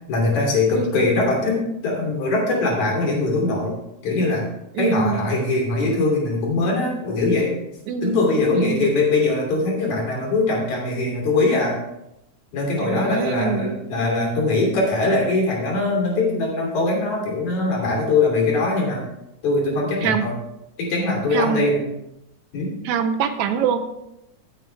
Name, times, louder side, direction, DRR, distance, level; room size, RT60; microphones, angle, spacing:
voice 1, 0.1-3.8 4.0-4.4 4.8-7.5 8.0-11.8 12.5-19.0 19.4-20.3 20.8-21.8 22.5-22.8, left 3 dB, 75° left, -1 dB, 4.4 m, -21 dB
voice 2, 0.7-1.1 4.7-5.3 7.9-8.9 12.8-13.8 20.0-20.3 21.3-21.6 22.9-23.8, right 7 dB, 80° right, 8 dB, 2.1 m, -24 dB
15.0 x 7.7 x 3.4 m, 0.86 s
omnidirectional pair, 3.3 m